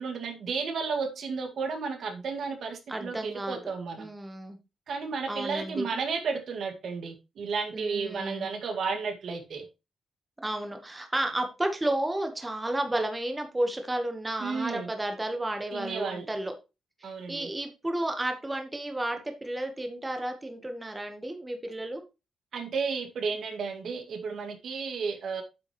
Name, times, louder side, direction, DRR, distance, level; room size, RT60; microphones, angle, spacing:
voice 1, 0.0-4.1 4.9-9.7 14.4-14.9 15.7-16.3 17.0-17.5 22.5-25.4, right 5 dB, 55° right, 2.0 m, -33 dB
voice 2, 2.9-3.7 4.0-4.6 5.3-5.9 7.7-8.5 10.4-16.5 17.0-22.0, right 1 dB, 10° right, 1.1 m, -32 dB
8.8 x 8.3 x 3.1 m
wide cardioid pair, 180°, 0 cm